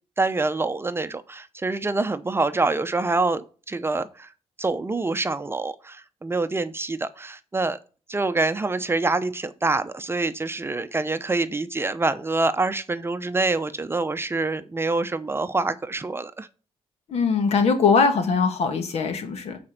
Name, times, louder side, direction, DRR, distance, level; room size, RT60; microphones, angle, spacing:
voice 1, 0.2-4.3 4.6-7.8 8.1-16.5, right 3 dB, 20° right, 0.7 m, -26 dB
voice 2, 17.1-19.6, left 5 dB, 75° left, 1.7 m, -21 dB
8.4 x 4.4 x 6.5 m
cardioid pair, 90°, 11 cm